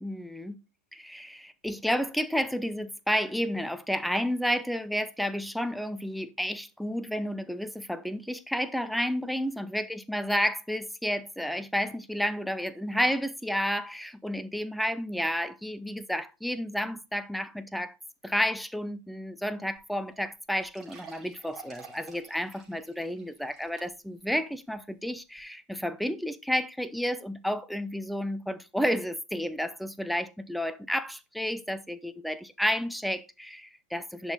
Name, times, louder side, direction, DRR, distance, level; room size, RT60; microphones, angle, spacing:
voice 1, 0.0-0.6 0.9-18.0 18.2-34.3, equal, ahead, 0.7 m, -31 dB
sound 1, 19.7-19.8 20.1-20.2 20.6-24.2 24.7-24.8 25.4-25.5, right 6 dB, 25° right, 3.4 m, -50 dB
10.5 x 5.1 x 4.0 m
figure-of-eight pair, 90°, 0 cm